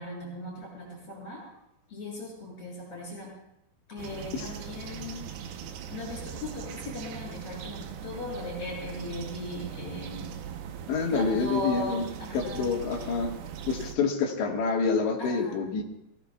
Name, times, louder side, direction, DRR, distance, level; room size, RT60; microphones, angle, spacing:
voice 1, 0.0-1.4 1.9-3.3 3.9-5.2 5.9-10.3 11.1-12.8 15.2-15.6, left 2 dB, 30° left, -3 dB, 8.3 m, -38 dB
sound 1, 4.0-14.0, right 8 dB, 75° right, 2.5 m, -40 dB
voice 2, 10.9-12.0 12.3-13.3 13.7-15.8, left 5 dB, 75° left, 0 dB, 3.9 m, -27 dB
28.5 x 17.0 x 2.4 m, 0.83 s
omnidirectional pair, 5.3 m